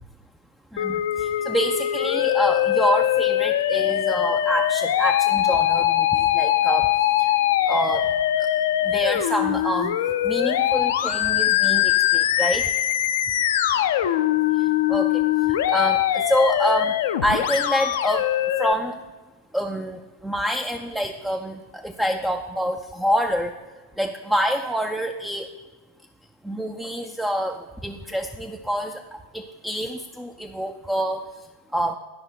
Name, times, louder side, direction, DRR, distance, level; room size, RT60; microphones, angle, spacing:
voice 1, 0.7-6.9 7.2-7.3 7.7-8.1 8.4-8.5 8.8-10.0 10.2-12.7 14.9-18.3 18.6-19.0 19.5-23.5 24.0-25.5 26.4-31.2 31.7-31.9, equal, 5° right, 4 dB, 0.4 m, -26 dB
Musical instrument, 0.8-18.7, left 12 dB, 55° left, 0.5 m, -22 dB
10.5 x 5.3 x 5.7 m, 1.2 s
figure-of-eight pair, 90°, 0 cm